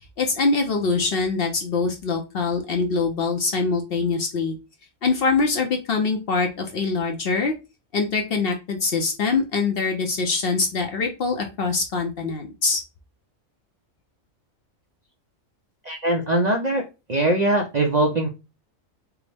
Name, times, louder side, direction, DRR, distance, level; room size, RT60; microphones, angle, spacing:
voice 1, 0.2-4.5 5.0-7.5 7.9-12.8, left 4 dB, 55° left, 3 dB, 0.7 m, -23 dB
voice 2, 15.8-16.8 17.1-18.3, right 1 dB, 50° right, 1 dB, 0.5 m, -21 dB
4.6 x 2.0 x 3.3 m, 0.28 s
omnidirectional pair, 1.4 m